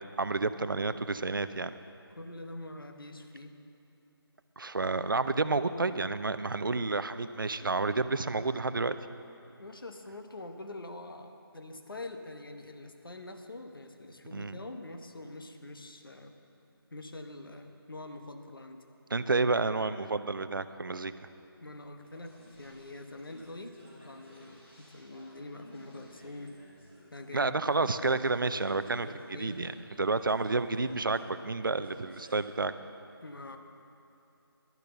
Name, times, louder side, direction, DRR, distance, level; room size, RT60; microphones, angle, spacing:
voice 1, 0.2-1.7 4.6-9.0 14.3-14.6 19.1-21.1 27.3-29.7 30.0-32.7, right 3 dB, 55° right, 12 dB, 0.5 m, -30 dB
voice 2, 2.1-3.5 9.6-16.4 16.9-18.8 21.6-23.8 24.0-26.6 27.1-28.2 28.8-29.6 33.2-33.6, left 2 dB, 60° left, 6 dB, 1.0 m, -45 dB
sound 1, 22.0-32.4, left 1 dB, 30° left, 2.9 m, -56 dB
12.0 x 6.8 x 7.9 m, 2.7 s
figure-of-eight pair, 175°, 13 cm